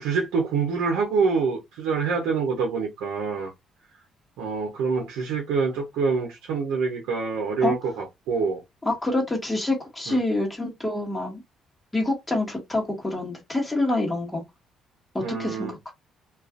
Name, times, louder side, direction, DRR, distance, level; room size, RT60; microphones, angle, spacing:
voice 1, 0.0-3.5 4.4-8.6 10.1-10.2 15.2-15.7, right 5 dB, 85° right, 0.7 m, -26 dB
voice 2, 8.8-11.4 11.9-14.4 15.1-15.9, left 2 dB, 15° left, 1.3 m, -26 dB
2.5 x 2.4 x 2.4 m
cardioid pair, 80°, 0 cm